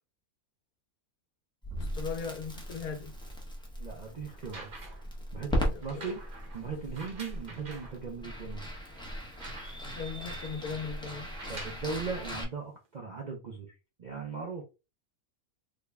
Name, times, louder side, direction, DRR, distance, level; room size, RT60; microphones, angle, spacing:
Crackle, 1.6-12.4, equal, 5° left, 0.5 m, -38 dB
voice 1, 1.8-3.1 5.5-6.2 9.9-11.3, left 5 dB, 80° left, 1.3 m, -38 dB
voice 2, 3.8-4.7 5.3-6.2 6.5-8.7 11.5-14.6, right 5 dB, 60° right, 0.4 m, -38 dB
sound 1, 4.3-5.1 5.8-8.0 8.5-8.6 9.0-10.0 11.2-11.9 12.9-13.0, right 3 dB, 40° right, 0.9 m, -47 dB
3.6 x 2.1 x 3.4 m
omnidirectional pair, 1.5 m